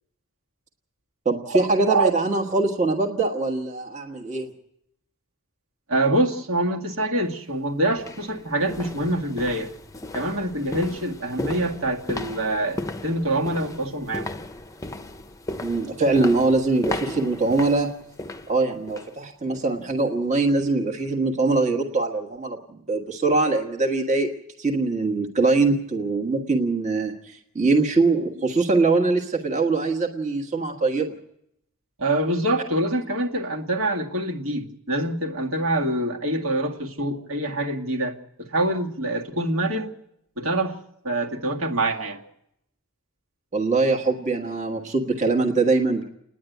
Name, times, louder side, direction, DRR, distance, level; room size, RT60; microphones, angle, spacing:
voice 1, 1.2-4.5 15.6-17.9 18.5-24.3 24.6-31.2 43.5-46.0, right 3 dB, 35° right, 2 dB, 1.4 m, -22 dB
voice 2, 5.9-9.7 10.1-14.3 32.0-39.9 40.4-40.8 41.0-42.2, right 1 dB, 70° right, 0 dB, 2.0 m, -25 dB
sound 1, 7.2-7.3 7.9-19.2 19.5-19.8 20.2-20.3, left 1 dB, 15° left, 0.7 m, -36 dB
29.0 x 10.0 x 9.2 m, 0.79 s
head